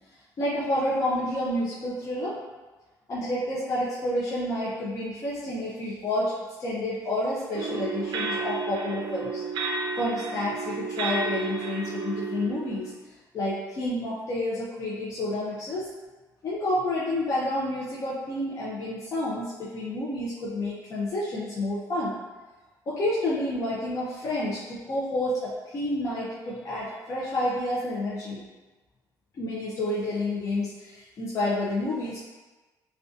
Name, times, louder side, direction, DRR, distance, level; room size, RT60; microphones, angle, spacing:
voice 1, 0.4-2.4 3.1-6.3 6.6-9.4 10.0-12.9 13.3-15.9 16.4-22.2 22.9-28.4 29.4-32.2, left 1 dB, 40° left, -8 dB, 0.5 m, -29 dB
sound 1, 7.5-12.9, right 4 dB, 75° right, 0.4 m, -32 dB
2.5 x 2.3 x 2.3 m, 1.2 s
cardioid pair, 140°, 8 cm